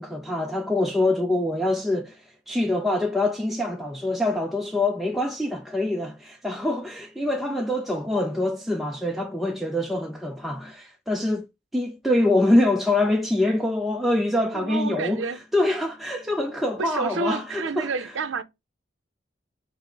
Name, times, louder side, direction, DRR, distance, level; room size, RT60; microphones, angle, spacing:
voice 1, 0.0-2.2 2.5-11.5 11.7-15.3 15.5-17.9, left 1 dB, ahead, 0.4 m, -25 dB
voice 2, 14.5-15.4 16.8-18.4, right 4 dB, 80° right, 0.5 m, -29 dB
5.2 x 2.0 x 3.7 m
head